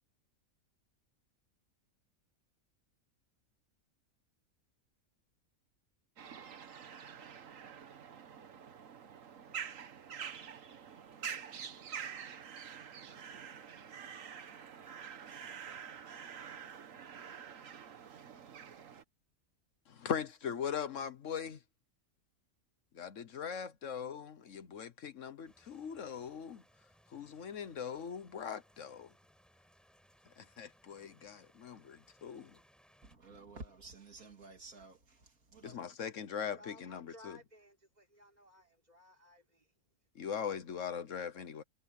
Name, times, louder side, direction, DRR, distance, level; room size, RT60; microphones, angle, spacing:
sound 1, 6.2-19.0, right 7 dB, 70° right, 1.5 m, -47 dB
voice 1, 19.9-21.6 22.9-26.6 27.1-29.1 30.4-32.6 35.6-37.4 40.1-41.6, left 7 dB, 65° left, 1.3 m, -40 dB
sound 2, 25.4-33.2, equal, ahead, 7.0 m, -67 dB
voice 2, 33.0-35.9, right 3 dB, 85° right, 3.0 m, -52 dB
voice 3, 36.6-39.7, left 2 dB, 30° right, 3.8 m, -58 dB
omnidirectional pair, 1.5 m